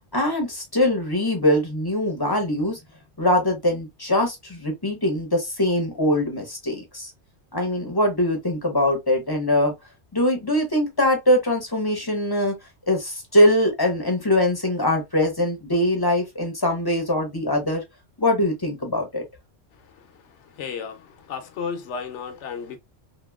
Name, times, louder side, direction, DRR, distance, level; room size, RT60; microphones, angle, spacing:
voice 1, 0.1-2.8 3.2-7.1 7.5-9.7 10.1-12.5 12.9-17.8 18.2-19.2, left 1 dB, 25° left, 0.6 m, -22 dB
voice 2, 20.6-22.8, left 6 dB, 75° left, 1.0 m, -33 dB
2.9 x 2.7 x 2.3 m
omnidirectional pair, 1.2 m